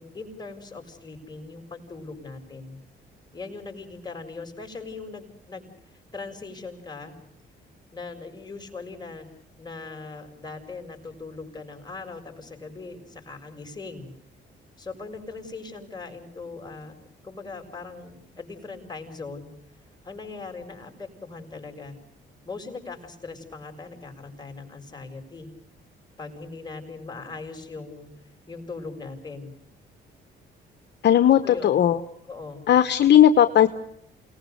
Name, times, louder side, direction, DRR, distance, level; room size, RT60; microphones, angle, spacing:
voice 1, 0.0-2.8 3.3-7.1 7.9-9.3 9.6-14.1 14.8-19.5 20.0-22.0 22.4-25.5 26.2-28.1 28.5-29.5 31.4-31.7 32.3-32.7, left 3 dB, 20° left, 3 dB, 6.7 m, -40 dB
voice 2, 31.0-32.0 32.7-33.7, left 10 dB, 60° left, 10 dB, 1.1 m, -17 dB
28.5 x 19.5 x 6.7 m, 0.71 s
cardioid pair, 90°, 20 cm